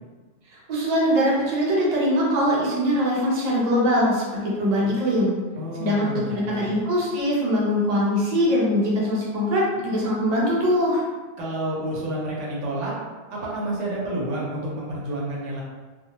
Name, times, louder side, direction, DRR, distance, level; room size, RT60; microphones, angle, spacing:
voice 1, 0.5-5.3 5.8-11.0, equal, 45° right, -5 dB, 0.6 m, -22 dB
voice 2, 5.6-6.7 11.4-12.9 13.3-15.6, right 1 dB, 80° right, -4 dB, 1.0 m, -29 dB
2.2 x 2.1 x 2.9 m, 1.3 s
omnidirectional pair, 1.3 m